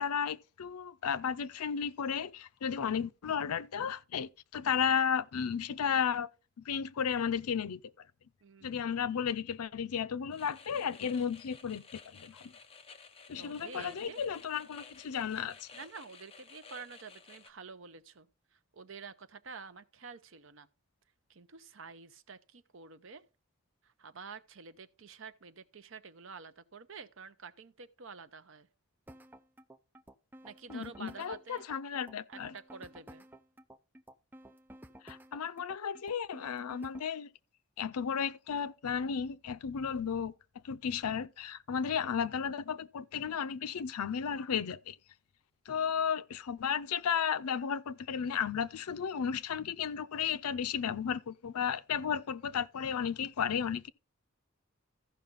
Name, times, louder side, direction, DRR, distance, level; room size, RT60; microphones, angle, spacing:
voice 1, 0.0-6.3 6.6-7.8 8.6-12.5 13.3-15.7 30.7-32.5 35.0-37.3 37.8-40.3 40.6-45.0 45.7-53.9, left 7 dB, 85° left, 0.5 m, -34 dB
voice 2, 8.4-8.8 13.4-14.2 15.7-18.3 18.5-20.7 21.3-23.2 23.8-28.7 30.4-31.7 32.3-33.2, right 5 dB, 60° right, 0.7 m, -49 dB
sound 1, 10.3-17.5, left 5 dB, 25° left, 0.8 m, -54 dB
sound 2, 29.1-37.1, right 1 dB, 10° right, 0.4 m, -53 dB
14.0 x 5.7 x 3.9 m
head